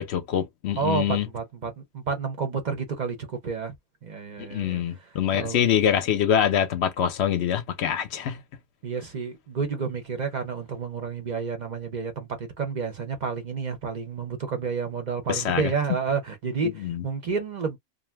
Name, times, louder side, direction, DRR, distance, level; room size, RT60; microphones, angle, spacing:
voice 1, 0.0-1.3 4.4-8.4 15.3-15.7 16.6-17.0, left 9 dB, 65° left, 0.7 m, -25 dB
voice 2, 0.8-3.7 4.0-4.8 5.3-5.6 8.8-17.8, right 5 dB, 50° right, 0.6 m, -30 dB
2.6 x 2.0 x 3.3 m
omnidirectional pair, 1.4 m